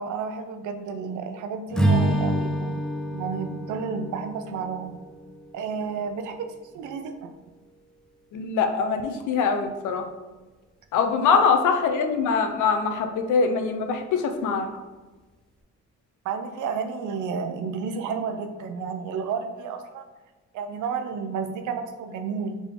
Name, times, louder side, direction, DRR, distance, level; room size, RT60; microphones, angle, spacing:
voice 1, 0.0-4.9 5.5-6.4 6.7-7.3 11.3-11.4 16.2-20.1 20.5-22.6, right 6 dB, 80° right, 7 dB, 0.6 m, -31 dB
Strum, 1.7-6.1, right 1 dB, ahead, 0.7 m, -27 dB
voice 2, 8.3-10.0 10.9-14.7, left 5 dB, 80° left, 6 dB, 0.7 m, -23 dB
3.7 x 3.6 x 3.6 m, 1.2 s
cardioid pair, 90°, 30 cm